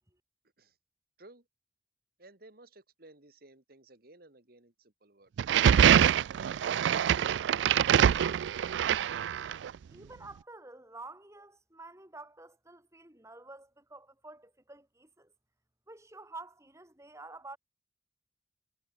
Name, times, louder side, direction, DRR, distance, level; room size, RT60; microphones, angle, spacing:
voice 1, 2.2-5.3, right 2 dB, 55° right, 2.3 m, -57 dB
sound 1, 5.4-9.7, right 9 dB, 85° right, 0.3 m, -24 dB
voice 2, 9.9-15.3 15.9-17.6, right 2 dB, 15° right, 4.7 m, -49 dB
head